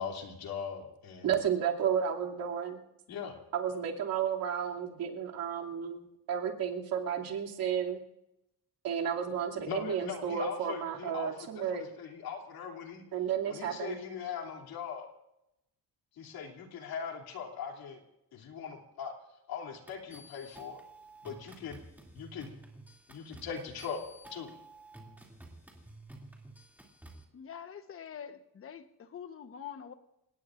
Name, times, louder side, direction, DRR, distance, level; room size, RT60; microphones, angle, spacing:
voice 1, 0.0-1.3 3.1-3.4 9.7-13.0 13.5-15.1 16.2-18.0 18.3-19.1 19.5-20.8 21.2-21.8 22.1-22.5 23.1-24.0 24.3-24.5, left 7 dB, 85° left, 2.9 m, -40 dB
voice 2, 1.2-2.8 3.5-6.0 6.3-8.0 8.8-11.8 13.1-14.0, right 8 dB, 75° right, 2.6 m, -32 dB
sound 1, 19.9-27.2, right 1 dB, 5° right, 2.6 m, -52 dB
voice 3, 27.3-29.9, left 8 dB, 40° left, 1.1 m, -45 dB
28.5 x 18.0 x 2.5 m
cardioid pair, 150°, 36 cm